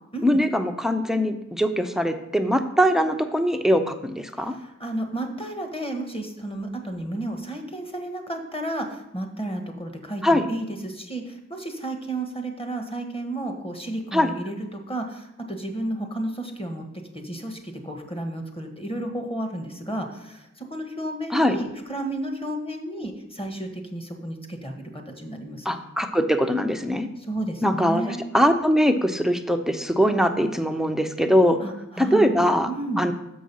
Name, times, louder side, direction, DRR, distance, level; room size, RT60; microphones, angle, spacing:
voice 1, 0.2-4.5 10.2-10.5 14.1-14.3 21.3-21.6 25.6-27.1 27.6-31.6 32.0-32.7 33.0-33.1, equal, ahead, 8 dB, 0.7 m, -22 dB
voice 2, 4.4-16.8 17.1-25.7 27.2-28.2 31.6-32.4 32.7-33.0, right 1 dB, 20° left, 4 dB, 1.4 m, -32 dB
6.7 x 6.3 x 5.5 m, 0.90 s
wide cardioid pair, 70°, 29 cm